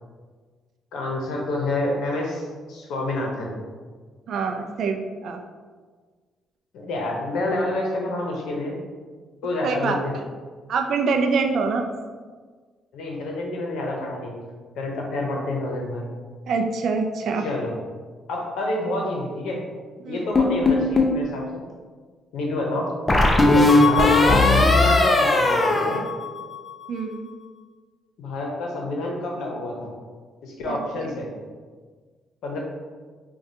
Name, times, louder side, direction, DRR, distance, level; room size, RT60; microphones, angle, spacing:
voice 1, 0.9-3.5 6.7-8.8 9.4-10.2 12.9-14.4 14.8-16.0 17.4-17.7 18.3-19.6 20.1-21.6 22.3-22.9 23.4-26.0 28.2-29.9 30.4-31.3 32.4-32.6, left 1 dB, 85° left, 0 dB, 0.7 m, -28 dB
voice 2, 4.3-5.4 9.6-10.0 10.7-11.9 16.5-17.5 20.0-20.3 26.9-27.3 30.7-30.8, right 4 dB, 65° right, 5 dB, 0.4 m, -25 dB
sound 1, 20.4-21.2 23.1-26.7, left 2 dB, 20° left, 0.5 m, -18 dB
4.6 x 2.3 x 2.7 m, 1.5 s
cardioid pair, 90°, 0 cm